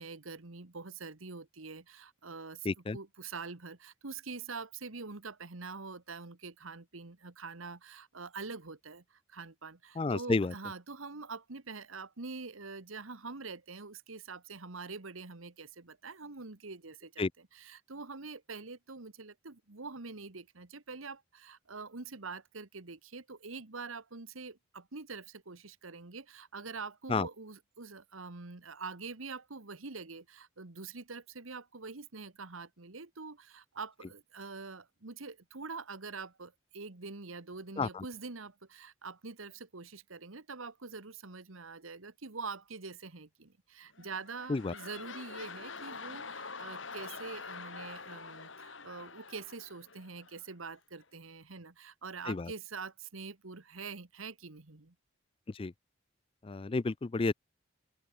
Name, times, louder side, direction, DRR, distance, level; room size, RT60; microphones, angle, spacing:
voice 1, 0.0-2.7 2.9-17.3 17.5-54.9, right 4 dB, 90° right, 1.6 m, -45 dB
voice 2, 2.6-3.0 10.0-10.5 17.2-17.3 27.1-27.3 37.8-38.0 44.5-44.7 52.3-52.5 55.5-55.7 56.4-57.3, left 3 dB, 25° left, 0.4 m, -31 dB
sound 1, 43.9-50.5 51.0-51.1, left 4 dB, 70° left, 5.2 m, -46 dB
open air
head